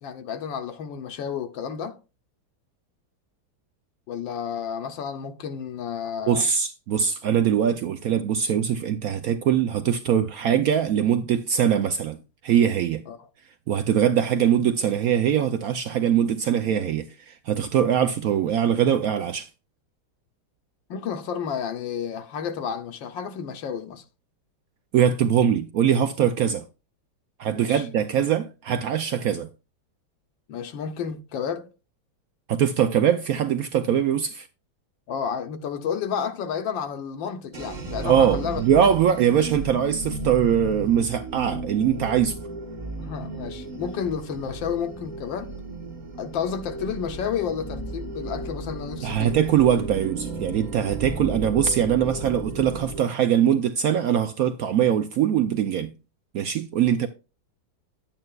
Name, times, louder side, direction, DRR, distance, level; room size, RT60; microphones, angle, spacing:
voice 1, 0.0-2.0 4.1-6.5 13.1-13.2 20.9-24.0 27.5-27.9 30.5-31.7 35.1-38.6 43.0-45.5 46.2-49.3 56.9-57.1, left 7 dB, 75° left, 1.5 m, -31 dB
voice 2, 6.3-12.2 12.4-13.0 13.7-19.5 24.9-26.6 27.4-29.5 32.5-34.5 38.0-42.4 49.0-55.9 56.3-57.1, right 9 dB, 85° right, 0.7 m, -22 dB
sound 1, 37.5-53.0, right 2 dB, 30° right, 1.0 m, -34 dB
10.5 x 8.7 x 2.3 m
omnidirectional pair, 2.2 m